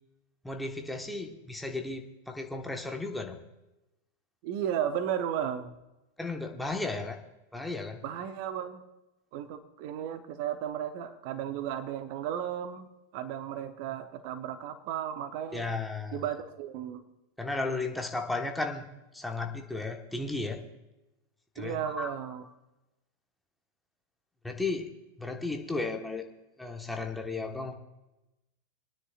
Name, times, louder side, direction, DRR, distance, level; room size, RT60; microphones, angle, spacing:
voice 1, 0.4-3.4 6.2-7.2 7.5-8.0 15.5-16.2 17.4-18.9 19.1-20.7 21.5-22.1 24.4-24.9 25.2-26.2 26.6-27.7, left 3 dB, 5° left, 3 dB, 1.2 m, -34 dB
voice 2, 4.4-5.7 8.0-8.8 9.3-12.9 13.1-15.7 16.1-17.0 21.6-22.5, right 9 dB, 45° right, 10 dB, 0.9 m, -34 dB
27.0 x 9.8 x 2.4 m, 0.98 s
figure-of-eight pair, 90°, 0 cm